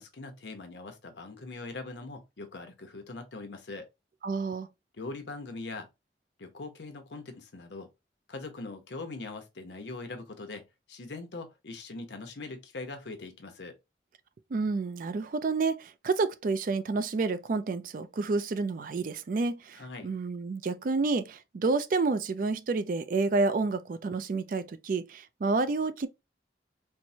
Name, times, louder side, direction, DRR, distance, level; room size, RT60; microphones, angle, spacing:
voice 1, 0.0-3.9 5.0-5.9 6.4-7.9 8.3-10.6 10.9-13.7 19.8-20.1, left 3 dB, 80° left, 0.8 m, -41 dB
voice 2, 4.2-4.7 14.5-26.1, right 3 dB, 50° right, 0.4 m, -29 dB
4.4 x 2.1 x 2.7 m
head